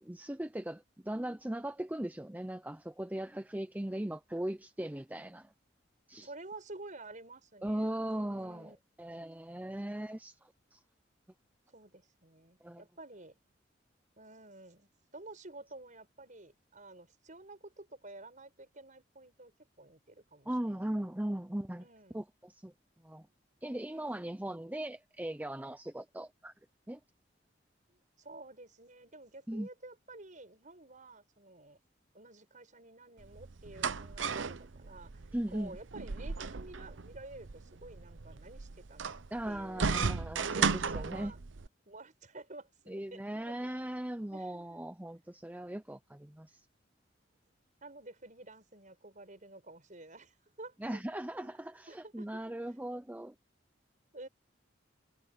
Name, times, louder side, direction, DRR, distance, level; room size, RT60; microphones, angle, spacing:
voice 1, 0.0-5.5 6.1-6.3 7.6-8.7 9.0-10.8 12.6-12.8 20.5-21.8 22.1-22.7 23.0-23.3 23.6-26.5 26.9-27.0 29.5-29.7 35.3-35.8 39.3-41.3 42.9-46.6 50.8-53.3, right 1 dB, 10° right, 0.6 m, -38 dB
voice 2, 6.2-8.8 11.7-13.3 14.2-19.5 19.8-20.9 21.8-22.2 23.9-24.4 27.9-31.8 32.1-35.2 35.5-40.0 40.4-41.4 41.9-43.7 44.3-44.8 47.8-51.0 51.4-51.6 51.9-52.5 54.1-54.3, right 2 dB, 45° right, 6.2 m, -51 dB
sound 1, 33.2-41.7, right 5 dB, 80° right, 0.8 m, -35 dB
head